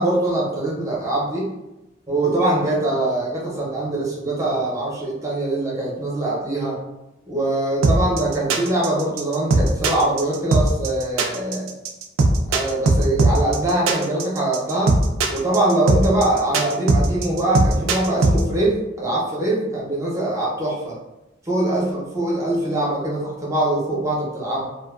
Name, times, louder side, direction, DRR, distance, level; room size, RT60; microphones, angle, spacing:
voice 1, 0.0-1.5 2.1-6.8 7.3-11.7 12.5-15.0 15.3-21.0 21.5-24.7, right 1 dB, 15° right, -5 dB, 0.7 m, -22 dB
sound 1, 7.8-18.4, right 2 dB, 90° right, 0.4 m, -18 dB
2.4 x 2.2 x 2.3 m, 0.95 s
head